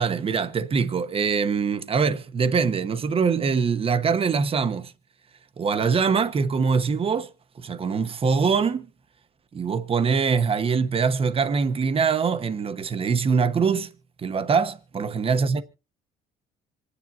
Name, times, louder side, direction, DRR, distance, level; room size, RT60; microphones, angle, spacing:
voice 1, 0.0-4.9 5.6-7.3 7.6-8.9 9.5-13.9 14.2-15.6, right 5 dB, 35° right, 1.1 m, -23 dB
26.0 x 9.8 x 2.8 m
cardioid pair, 110°, 17 cm